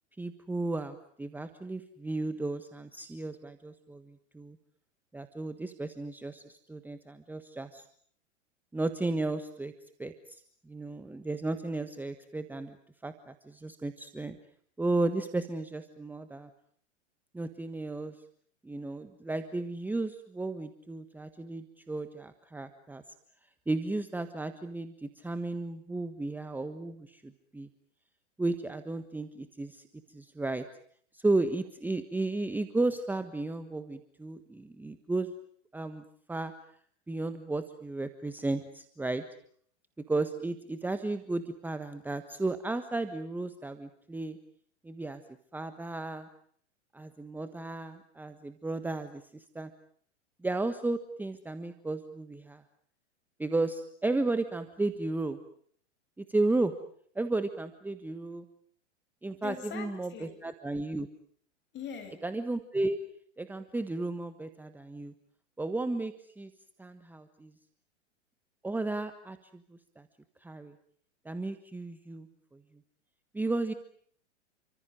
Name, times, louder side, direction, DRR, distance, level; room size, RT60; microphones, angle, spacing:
voice 1, 0.2-4.6 5.1-7.8 8.7-9.7 10.0-12.8 13.0-14.4 14.8-16.5 17.3-18.2 18.6-23.0 23.7-27.7 28.4-29.8 30.1-30.6 31.1-35.3 35.7-36.5 37.1-39.2 40.1-44.4 44.8-45.2 45.5-46.3 46.9-49.7 50.4-52.6 53.4-55.4 56.2-56.7 57.1-58.4 59.2-61.1 62.2-63.0 63.4-65.1 65.6-66.5 66.8-67.5 68.6-70.1 70.4-70.7 71.2-72.3 72.5-72.6 73.3-73.7, right 2 dB, 5° right, 10 dB, 1.4 m, -34 dB
voice 2, 59.4-60.4 61.7-62.2, left 7 dB, 30° left, 6 dB, 7.8 m, -41 dB
29.5 x 25.0 x 6.6 m, 0.62 s
figure-of-eight pair, 100°, 36 cm